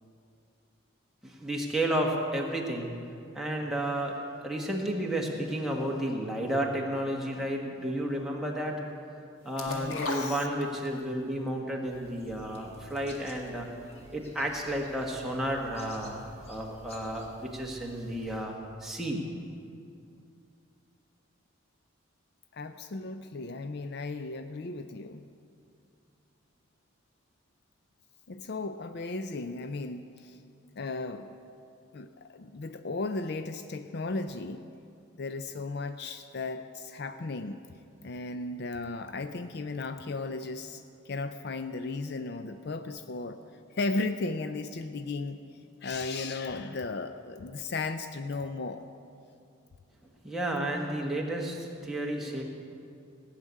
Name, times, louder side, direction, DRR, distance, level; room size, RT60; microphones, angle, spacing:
voice 1, 1.2-2.9 3.3-4.2 4.4-8.8 9.4-13.7 14.1-18.5 18.8-19.2 50.2-52.4, right 1 dB, ahead, -2 dB, 1.5 m, -32 dB
sound 1, 9.6-11.1 11.5-11.6, left 2 dB, 90° left, 1.9 m, -35 dB
voice 2, 9.7-10.4 22.5-25.3 28.3-30.4 30.8-31.4 31.9-34.6 35.2-37.6 38.0-43.4 43.7-45.4 45.8-48.9, left 3 dB, 50° left, 9 dB, 0.5 m, -35 dB
sound 2, 11.9-18.4, equal, 30° left, 1.5 m, -52 dB
17.0 x 6.7 x 9.4 m, 2.5 s
head